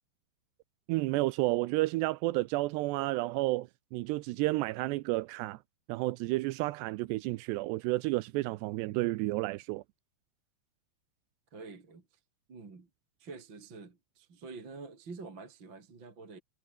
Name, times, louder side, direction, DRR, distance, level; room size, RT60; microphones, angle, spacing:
voice 1, 0.9-5.6 5.9-9.8, right 20 dB, 85° right, 2.5 m, -31 dB
voice 2, 11.5-12.2 12.5-12.9 13.2-16.4, right 4 dB, 25° right, 3.5 m, -47 dB
omnidirectional pair, 5.5 m